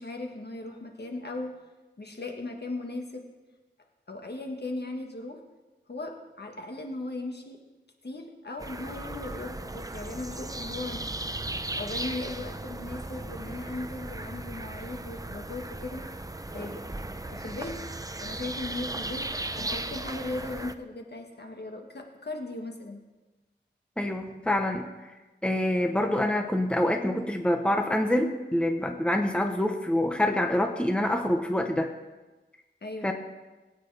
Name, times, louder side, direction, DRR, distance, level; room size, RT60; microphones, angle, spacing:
voice 1, 0.0-1.6 2.0-3.2 4.1-5.4 5.9-7.6 8.0-11.1 11.8-16.0 16.5-16.9 17.3-17.8 18.2-19.3 19.6-23.0 32.8-33.1, left 2 dB, 60° left, 3 dB, 1.6 m, -37 dB
sound 1, 8.6-20.8, right 2 dB, 20° right, 0.6 m, -37 dB
voice 2, 24.0-24.9 25.4-31.9 33.0-33.1, left 1 dB, 5° left, 4 dB, 1.0 m, -26 dB
20.5 x 9.1 x 3.4 m, 1.2 s
wide cardioid pair, 70°, 19 cm